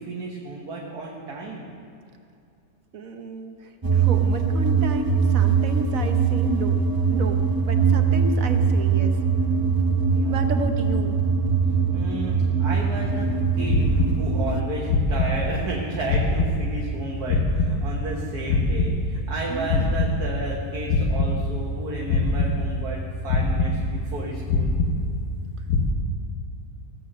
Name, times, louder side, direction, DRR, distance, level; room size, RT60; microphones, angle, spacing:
voice 1, 0.0-1.7 10.1-10.5 11.9-24.7, right 2 dB, 80° right, -3 dB, 1.9 m, -33 dB
voice 2, 2.9-9.2 10.2-11.2 19.5-19.9, right 3 dB, 65° right, 6 dB, 1.2 m, -32 dB
sound 1, 3.8-14.6, right 5 dB, 35° right, 0.3 m, -22 dB
sound 2, 13.7-14.6 14.9-15.8 16.1-18.2 18.5-20.6 20.9-21.8 22.1-23.0 23.3-24.2 24.5-25.4 25.7-25.9, left 2 dB, 75° left, 1.6 m, -24 dB
16.0 x 7.5 x 6.6 m, 2.5 s
omnidirectional pair, 1.6 m